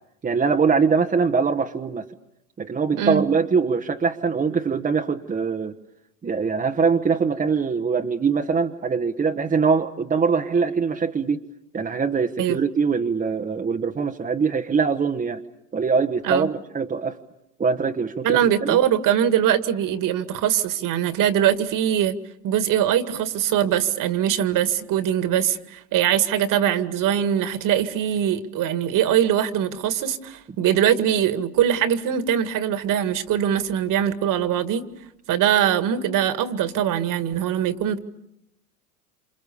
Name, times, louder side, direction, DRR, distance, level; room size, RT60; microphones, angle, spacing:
voice 1, 0.2-2.1 2.6-5.7 6.2-11.4 11.7-15.4 15.7-17.2 17.6-18.8, right 5 dB, 15° right, 4 dB, 1.2 m, -23 dB
voice 2, 18.2-22.2 22.4-34.9 35.3-38.0, right 10 dB, 40° right, 10 dB, 2.1 m, -22 dB
28.0 x 27.5 x 7.0 m, 0.82 s
hypercardioid pair, 100°, 47 cm